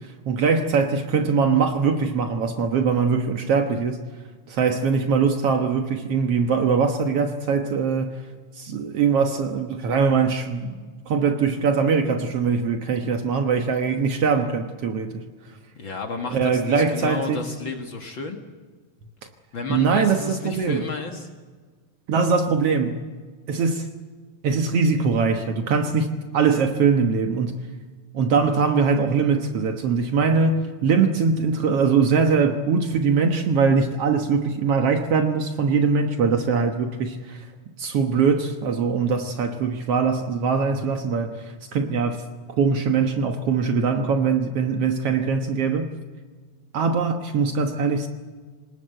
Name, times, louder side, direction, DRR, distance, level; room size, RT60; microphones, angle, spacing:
voice 1, 0.2-4.0 4.5-8.2 8.6-10.8 11.1-15.2 16.3-17.4 19.7-20.8 22.1-23.0 23.5-23.8 24.4-27.7 28.1-37.4 37.8-42.2 42.6-45.9 46.7-48.1, right 5 dB, 90° right, 5 dB, 1.3 m, -22 dB
voice 2, 15.8-18.4 19.5-21.3, left 4 dB, 60° left, 3 dB, 1.3 m, -32 dB
26.0 x 20.0 x 7.8 m, 1.5 s
omnidirectional pair, 4.8 m